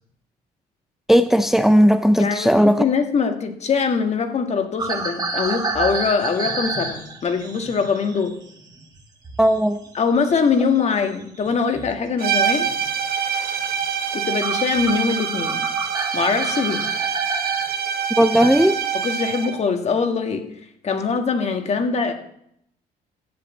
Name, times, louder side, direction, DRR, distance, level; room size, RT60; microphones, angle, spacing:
voice 1, 1.1-2.8 9.4-9.8 18.2-18.8, equal, ahead, 9 dB, 0.5 m, -16 dB
voice 2, 2.2-8.3 9.9-12.7 14.1-15.6 16.1-16.9 19.0-20.5 20.8-22.1, left 5 dB, 40° left, 6 dB, 1.8 m, -22 dB
sound 1, 4.8-9.6 9.8-12.0 12.5-12.9 13.3-13.5 14.1-14.2 14.4-17.7, right 3 dB, 25° right, 2.2 m, -30 dB
sound 2, 12.2-19.6, right 7 dB, 65° right, 1.6 m, -25 dB
11.0 x 7.7 x 8.1 m, 0.74 s
cardioid pair, 110°, 17 cm